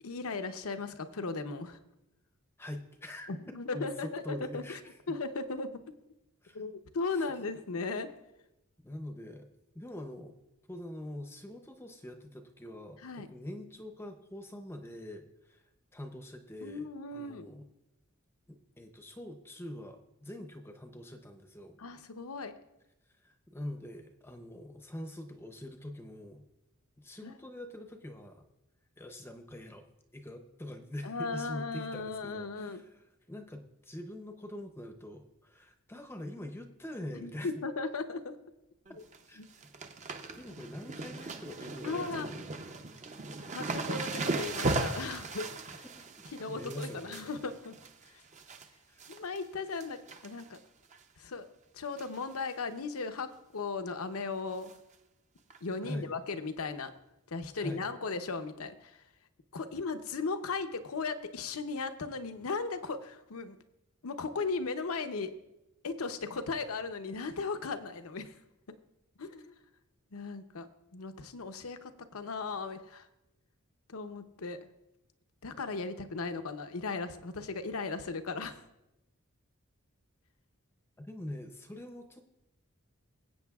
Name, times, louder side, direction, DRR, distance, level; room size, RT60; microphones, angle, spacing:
voice 1, 0.0-1.8 3.5-4.8 5.1-5.8 6.5-8.1 13.0-13.3 16.6-17.5 21.8-22.5 27.2-27.3 31.0-32.8 37.1-38.4 39.4-39.5 41.8-42.3 43.5-45.5 46.3-47.8 49.1-50.6 51.2-51.5 51.7-54.7 55.6-56.9 57.3-58.9 59.5-63.6 64.0-65.3 65.8-68.3 69.2-69.6 70.1-73.1 73.9-74.6 75.4-78.6, left 4 dB, 85° left, 9 dB, 0.7 m, -37 dB
voice 2, 2.6-5.2 6.4-6.6 7.1-7.4 8.8-9.5 9.7-10.4 10.7-15.6 15.9-17.7 18.5-21.8 23.2-26.4 27.0-28.5 29.0-29.9 30.1-37.5 39.3-39.4 40.4-42.6 45.8-46.1 46.5-47.3 48.9-49.0 55.8-56.1 57.6-57.8 81.0-82.4, left 1 dB, 10° left, 5 dB, 0.6 m, -44 dB
sound 1, 38.9-39.2 39.4-48.7 49.0-49.4 49.7-50.6 50.9-51.0 52.0-52.2 52.5-52.6 53.0-53.1 54.7-54.8 55.5-55.6, right 3 dB, 35° right, 0.6 m, -37 dB
22.5 x 8.1 x 2.4 m, 0.92 s
head